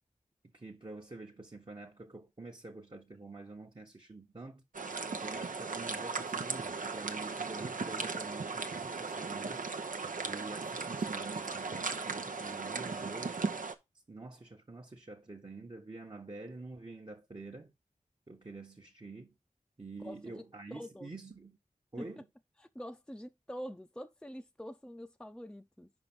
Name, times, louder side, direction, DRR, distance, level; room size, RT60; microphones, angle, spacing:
voice 1, 0.4-4.6 5.2-9.6 10.2-13.5 14.1-17.7 18.3-19.3 19.8-21.6 21.9-22.3, right 3 dB, 35° right, 1.1 m, -47 dB
sound 1, 4.7-13.7, right 4 dB, 75° right, 0.8 m, -37 dB
voice 2, 20.0-20.4 20.7-21.1 22.0-22.1 22.6-25.9, equal, 5° left, 0.6 m, -45 dB
5.2 x 4.9 x 6.0 m
wide cardioid pair, 50°, 14 cm